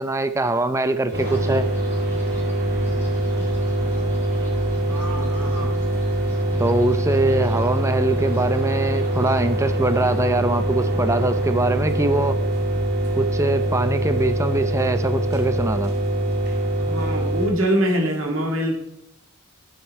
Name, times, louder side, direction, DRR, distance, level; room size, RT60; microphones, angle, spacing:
voice 1, 0.0-1.7 6.6-12.4 13.2-15.9, right 2 dB, 15° right, 11 dB, 0.5 m, -23 dB
sound 1, 1.1-10.2, equal, 10° left, 2.5 m, -43 dB
sound 2, 1.1-17.5, right 1 dB, 50° right, 2.4 m, -23 dB
voice 2, 4.9-5.8 16.8-18.7, equal, 75° right, 2 dB, 2.2 m, -24 dB
11.0 x 7.9 x 4.3 m, 0.78 s
head